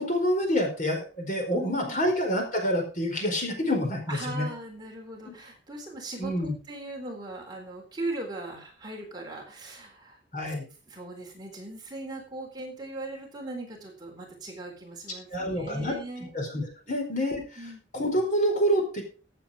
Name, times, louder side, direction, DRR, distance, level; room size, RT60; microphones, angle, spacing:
voice 1, 0.0-4.5 5.3-5.4 6.2-6.6 10.3-10.7 15.3-17.6 17.9-19.0, equal, 40° left, 3 dB, 4.7 m, -27 dB
voice 2, 1.5-2.0 4.1-10.2 10.5-10.6 10.9-16.3 16.9-17.0 17.6-17.8, right 2 dB, 20° right, 0 dB, 4.0 m, -39 dB
16.0 x 8.4 x 5.0 m, 0.36 s
head